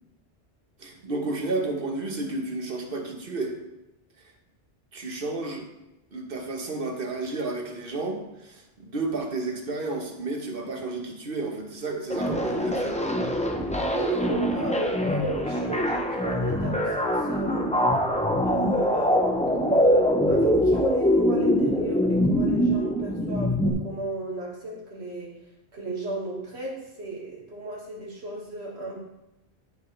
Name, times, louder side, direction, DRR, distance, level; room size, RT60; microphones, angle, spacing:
voice 1, 0.8-3.5 4.9-5.7 6.1-13.0, right 3 dB, 60° right, 2 dB, 1.3 m, -31 dB
sound 1, 12.1-23.7, equal, 10° left, 0.6 m, -24 dB
voice 2, 13.8-17.7 18.4-19.3 19.6-25.3 25.7-29.0, right 2 dB, 80° right, -3 dB, 2.1 m, -34 dB
12.5 x 4.7 x 3.3 m, 0.94 s
omnidirectional pair, 1.1 m